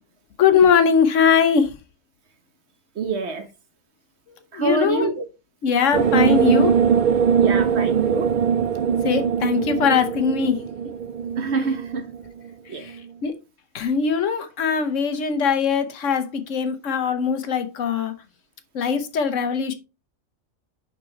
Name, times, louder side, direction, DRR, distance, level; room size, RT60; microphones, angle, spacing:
voice 1, 0.4-1.7 4.3-5.1 5.6-6.8 9.0-10.6 12.7-13.3 13.7-18.1 18.7-19.7, left 6 dB, 70° left, 1.2 m, -21 dB
voice 2, 3.0-3.5 4.5-5.2 7.4-8.3 11.4-12.1 12.7-12.8, right 5 dB, 55° right, 1.3 m, -26 dB
sound 1, 5.9-12.3, right 7 dB, 70° right, 0.4 m, -21 dB
6.2 x 5.8 x 3.3 m
omnidirectional pair, 1.4 m